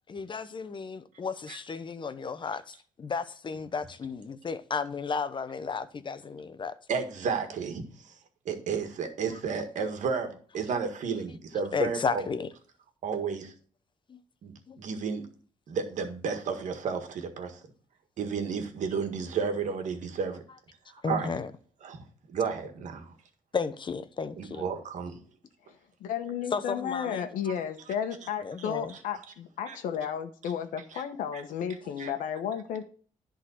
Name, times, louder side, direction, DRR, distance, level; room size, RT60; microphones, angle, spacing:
voice 1, 0.1-6.8 11.7-12.5 14.1-14.2 14.7-14.8 21.0-21.5 23.5-24.7 26.5-27.3 28.4-29.0, left 5 dB, 35° left, 0.9 m, -33 dB
voice 2, 6.9-8.2 8.5-12.2 13.0-13.5 14.4-15.3 15.7-17.6 18.2-20.4 21.1-21.3 21.8-22.0 22.3-23.1 24.4-25.2 27.5-27.6 28.6-28.7 29.7-29.8 31.3-31.4 32.0-32.1, right 5 dB, 70° right, 1.7 m, -32 dB
voice 3, 26.0-32.8, left 8 dB, 85° left, 1.1 m, -33 dB
11.0 x 3.9 x 6.4 m
cardioid pair, 80°, 13 cm